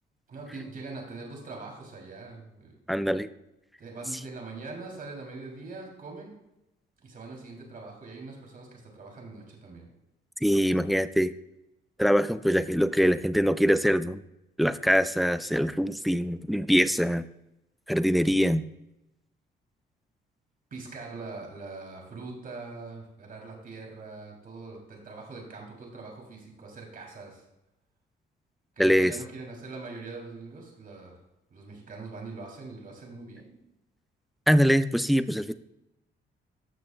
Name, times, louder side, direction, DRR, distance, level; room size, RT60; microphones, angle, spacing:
voice 1, 0.3-2.7 3.8-6.3 7.0-9.9 20.7-27.4 28.8-31.1 31.5-33.6, right 3 dB, 45° right, 0 dB, 3.0 m, -42 dB
voice 2, 2.9-3.3 10.4-11.3 12.0-14.2 14.6-17.2 17.9-18.6 28.8-29.1 34.5-35.5, equal, ahead, 13 dB, 0.3 m, -23 dB
14.0 x 6.1 x 2.2 m, 0.90 s
cardioid pair, 90°, 20 cm